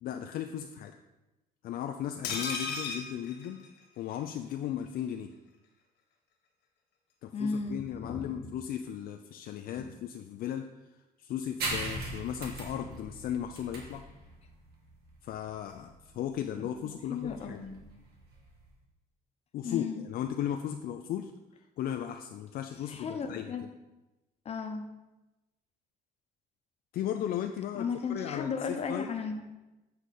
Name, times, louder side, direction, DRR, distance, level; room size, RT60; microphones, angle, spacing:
voice 1, 0.0-0.9 1.6-3.6 4.0-5.3 7.2-10.7 11.2-14.0 15.2-17.6 19.5-21.3 21.8-23.5 26.9-29.1, left 10 dB, 60° left, 5 dB, 0.4 m, -36 dB
sound 1, 2.2-4.2 4.5-4.6 4.9-5.0, left 4 dB, 80° left, 1.4 m, -36 dB
voice 2, 7.3-8.3 9.8-9.9 16.7-16.8 17.1-17.8 19.6-20.0 22.9-23.6 24.4-24.9 27.7-29.4, left 5 dB, 40° left, 5 dB, 0.9 m, -35 dB
sound 2, 11.6-18.7, right 2 dB, 70° right, 1.7 m, -40 dB
8.1 x 4.9 x 4.2 m, 1.0 s
cardioid pair, 110°, 17 cm